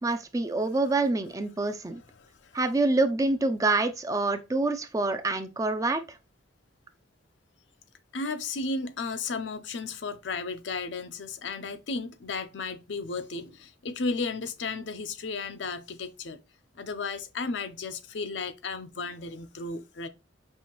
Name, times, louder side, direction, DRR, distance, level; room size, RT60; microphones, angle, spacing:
voice 1, 0.0-2.0 2.5-6.2, right 2 dB, 20° right, 0.4 m, -26 dB
voice 2, 2.2-2.5 8.1-16.4 16.8-20.1, left 3 dB, 75° left, 0.5 m, -34 dB
5.5 x 2.5 x 2.9 m
head